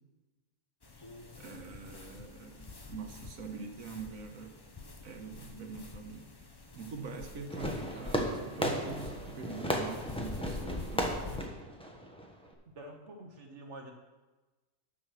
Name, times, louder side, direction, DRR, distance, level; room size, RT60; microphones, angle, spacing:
sound 1, 0.8-11.5, left 3 dB, 30° left, 0.5 m, -46 dB
voice 1, 1.4-4.5 5.0-6.3 6.7-11.4, right 4 dB, 85° right, 5 dB, 1.5 m, -44 dB
Fireworks, 7.5-12.5, equal, 5° left, 1.0 m, -35 dB
voice 2, 12.7-13.9, right 1 dB, 60° right, 3 dB, 1.3 m, -47 dB
9.9 x 6.2 x 6.2 m, 1.2 s
omnidirectional pair, 1.4 m